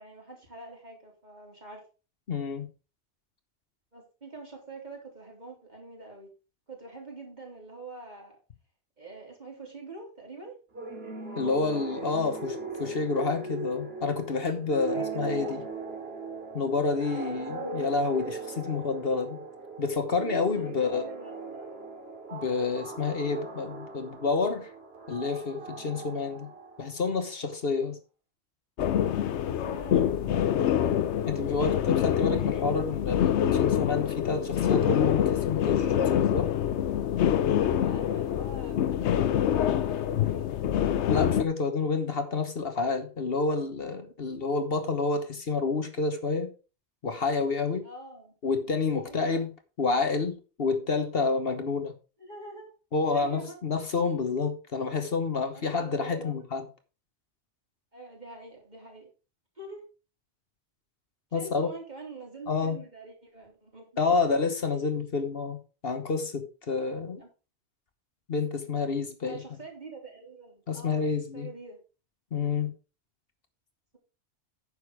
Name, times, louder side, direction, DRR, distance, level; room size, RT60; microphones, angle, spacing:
voice 1, 0.0-1.8 3.9-6.3 6.7-8.4 9.0-10.6 14.9-15.6 17.0-17.4 20.6-21.7 29.2-30.5 37.6-40.5 47.8-48.3 49.0-49.4 52.2-52.7 53.1-53.6 55.5-56.5 57.9-59.1 59.6-59.8 61.3-64.2 67.2-67.3 69.2-71.8, right 3 dB, 40° right, 3.6 m, -45 dB
voice 2, 2.3-2.7 11.4-15.6 16.5-19.4 19.8-21.0 22.3-24.7 25.1-26.5 26.8-28.0 31.3-36.5 41.1-46.5 47.0-47.9 48.4-49.5 49.8-51.9 52.9-56.7 61.3-61.7 62.5-62.8 64.0-65.6 65.8-67.2 68.3-69.4 70.7-71.5 72.3-72.7, left 4 dB, 60° left, 1.4 m, -29 dB
sound 1, 10.7-27.1, right 3 dB, 60° right, 2.7 m, -39 dB
sound 2, 28.8-41.5, left 10 dB, 80° left, 1.0 m, -26 dB
9.6 x 6.9 x 4.7 m
omnidirectional pair, 1.2 m